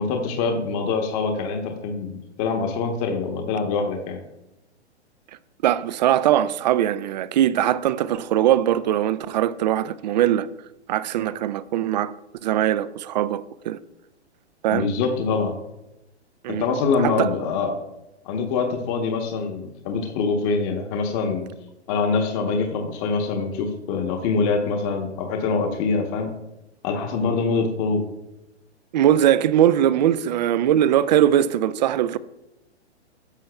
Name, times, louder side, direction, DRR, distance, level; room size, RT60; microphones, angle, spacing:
voice 1, 0.0-4.2 14.7-15.5 16.5-17.8 18.2-21.5 21.9-26.3 26.8-28.0, left 4 dB, 30° left, 1.1 m, -24 dB
voice 2, 5.6-10.5 10.9-12.1 12.4-13.8 14.6-14.9 16.4-16.7 17.0-17.3 28.9-32.2, right 11 dB, 40° right, 0.4 m, -21 dB
13.0 x 7.5 x 2.3 m
figure-of-eight pair, 120°, 34 cm